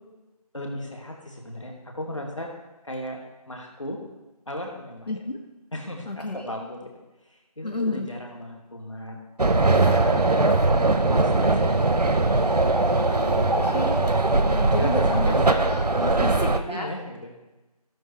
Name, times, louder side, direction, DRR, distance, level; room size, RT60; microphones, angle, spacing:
voice 1, 0.5-2.5 2.8-4.0 4.5-5.1 5.7-6.9 7.3-9.2 9.8-11.8 13.2-13.9 14.8-15.4 16.0-17.3, left 1 dB, 50° left, 1 dB, 2.2 m, -35 dB
voice 2, 5.1-5.4 6.0-6.5 7.6-8.1 13.1-15.9 16.2-16.9, left 2 dB, 90° left, 2 dB, 1.4 m, -31 dB
sound 1, 9.4-16.6, right 2 dB, 80° right, 0.9 m, -21 dB
16.5 x 6.6 x 3.3 m, 1.1 s
figure-of-eight pair, 175°, 20 cm